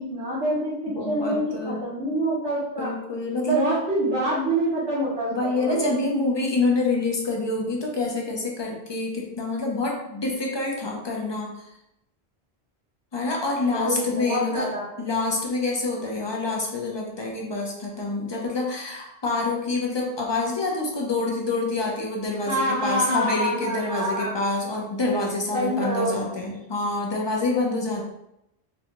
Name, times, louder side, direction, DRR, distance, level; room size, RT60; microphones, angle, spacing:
voice 1, 0.1-2.9 3.5-6.0 13.7-14.9 22.5-24.3 25.5-26.3, right 1 dB, 75° right, -11 dB, 1.3 m, -26 dB
voice 2, 0.9-1.9 2.8-3.7 5.3-11.7 13.1-14.7 15.0-28.0, left 2 dB, 30° left, -1 dB, 0.5 m, -27 dB
4.0 x 2.3 x 2.9 m, 0.84 s
omnidirectional pair, 1.1 m